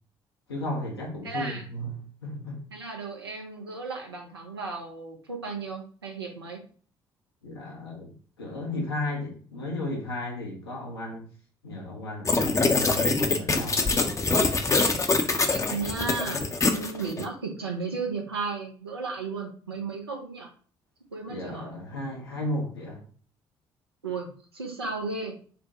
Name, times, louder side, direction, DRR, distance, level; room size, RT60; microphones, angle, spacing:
voice 1, 0.5-2.7 7.4-11.2 11.6-13.8 21.2-23.0, left 1 dB, 85° left, -1 dB, 0.9 m, -35 dB
voice 2, 1.2-1.7 2.7-6.6 15.5-20.5 21.1-21.7 24.0-24.3 24.5-25.3, right 4 dB, 85° right, 1 dB, 0.6 m, -34 dB
sound 1, 12.2-17.2, left 3 dB, 25° left, 0.6 m, -24 dB
5.1 x 2.2 x 2.9 m, 0.43 s
figure-of-eight pair, 45°, 13 cm